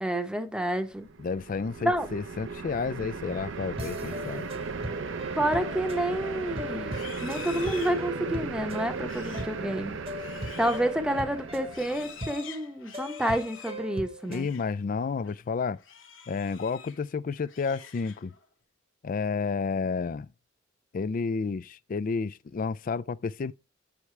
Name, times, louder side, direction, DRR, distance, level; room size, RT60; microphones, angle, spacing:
voice 1, 0.0-1.1 1.8-2.1 5.4-10.0 10.6-14.5, right 1 dB, 5° right, 0.8 m, -29 dB
sound 1, 0.9-12.3, right 4 dB, 65° right, 0.6 m, -37 dB
voice 2, 1.2-4.5 14.3-15.8 16.3-18.3 19.0-20.3 20.9-23.5, left 5 dB, 40° left, 0.3 m, -31 dB
sound 2, 3.8-14.5, equal, 30° right, 1.0 m, -40 dB
Livestock farm animals working animals, 6.8-14.7 15.1-15.4 15.8-17.1 17.4-18.4, left 8 dB, 70° left, 1.1 m, -47 dB
8.4 x 5.0 x 4.4 m
head